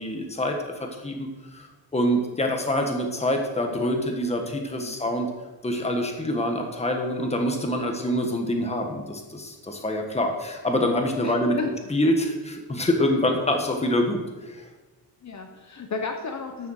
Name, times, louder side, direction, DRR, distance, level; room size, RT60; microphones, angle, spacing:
voice 1, 0.0-5.3 5.6-11.6 11.9-14.7, left 1 dB, 15° left, 3 dB, 1.4 m, -26 dB
voice 2, 11.2-11.7 13.1-13.4 15.2-16.7, left 4 dB, 45° left, 3 dB, 1.0 m, -33 dB
13.0 x 7.0 x 6.5 m, 1.2 s
wide cardioid pair, 180°, 40 cm